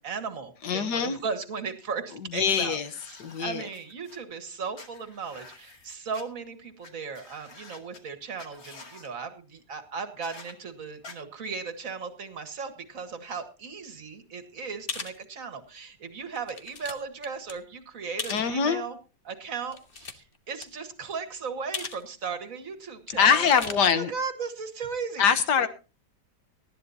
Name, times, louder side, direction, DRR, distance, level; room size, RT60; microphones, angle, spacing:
voice 1, 0.0-2.8 3.1-19.0 19.2-25.3 25.6-25.7, right 5 dB, 50° right, 8 dB, 2.0 m, -36 dB
voice 2, 0.6-1.2 2.3-2.9 3.2-3.7 18.3-18.9 23.1-24.1 25.2-25.7, left 7 dB, 70° left, 11 dB, 1.7 m, -23 dB
sound 1, 2.8-4.2 4.7-6.2 6.8-6.9 7.1-8.0 8.4-9.1 10.2-10.5 11.0-11.1, left 3 dB, 55° left, 2.6 m, -49 dB
sound 2, 14.9-15.2 15.8-15.9 16.4-16.9 17.2-17.5 18.2-18.5 19.6-20.4 20.6-20.7 21.7-22.0 22.3-22.4 23.3-23.7, left 5 dB, 35° left, 1.2 m, -36 dB
19.0 x 13.5 x 2.8 m, 0.31 s
omnidirectional pair, 1.9 m